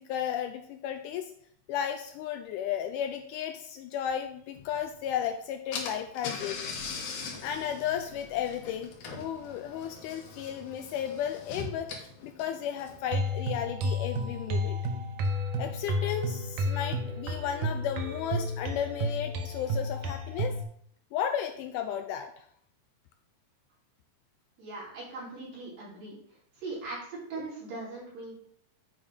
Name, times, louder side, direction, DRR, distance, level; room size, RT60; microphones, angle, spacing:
voice 1, 0.0-1.3 1.7-6.6 7.4-14.8 15.6-20.5 21.1-22.5 27.4-27.5, left 9 dB, 90° left, 6 dB, 1.8 m, -34 dB
Car / Engine, 5.2-5.3 5.7-13.2, left 4 dB, 70° left, 2.3 m, -41 dB
sound 1, 13.1-20.6, equal, 85° right, 1.4 m, -31 dB
voice 2, 24.6-26.2 26.6-28.3, right 3 dB, 70° right, -7 dB, 4.5 m, -40 dB
8.8 x 3.4 x 5.1 m, 0.65 s
omnidirectional pair, 4.2 m